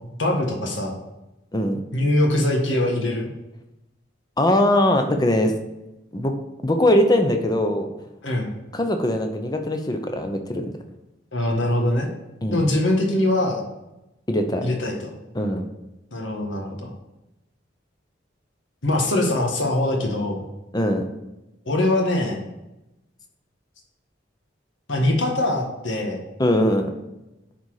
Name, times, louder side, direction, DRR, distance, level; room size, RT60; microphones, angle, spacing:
voice 1, 0.2-1.0 1.9-3.3 8.2-8.5 11.3-12.1 12.5-13.7 14.6-15.1 16.1-16.9 18.8-20.4 21.7-22.4 24.9-26.2, left 1 dB, 85° left, 2 dB, 1.6 m, -22 dB
voice 2, 4.4-5.5 6.1-6.3 6.6-7.9 8.7-10.7 12.4-12.7 14.3-14.7 15.3-15.6 20.7-21.1 26.4-26.9, left 1 dB, 20° left, 5 dB, 0.8 m, -21 dB
10.0 x 4.2 x 4.9 m, 0.95 s
head